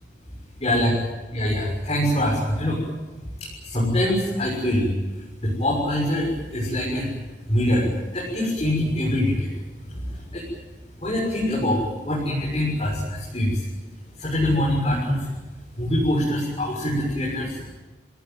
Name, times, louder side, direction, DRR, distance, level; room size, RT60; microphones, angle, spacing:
voice 1, 1.3-2.8 3.6-4.9 5.4-7.1 7.5-9.5 9.8-10.4 11.0-13.7 14.2-15.3 15.8-17.6, left 1 dB, 35° left, -4 dB, 6.6 m, -24 dB
28.5 x 18.5 x 9.4 m, 1.2 s
head